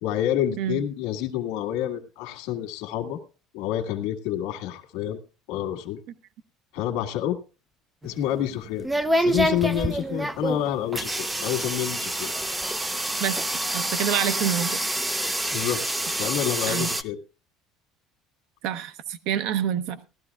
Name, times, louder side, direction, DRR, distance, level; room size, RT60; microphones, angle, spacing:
voice 1, 0.0-3.2 3.5-5.2 5.5-6.0 6.7-7.4 8.0-8.9 9.2-12.3 15.5-15.8 16.2-17.2, left 11 dB, 80° left, 5 dB, 1.7 m, -28 dB
sound 1, 8.0-17.0, right 1 dB, 5° right, 0.5 m, -27 dB
voice 2, 13.7-14.8 16.7-16.9 18.6-20.0, right 10 dB, 65° right, 12 dB, 0.9 m, -27 dB
18.5 x 13.0 x 2.4 m, 0.33 s
cardioid pair, 155°, 0 cm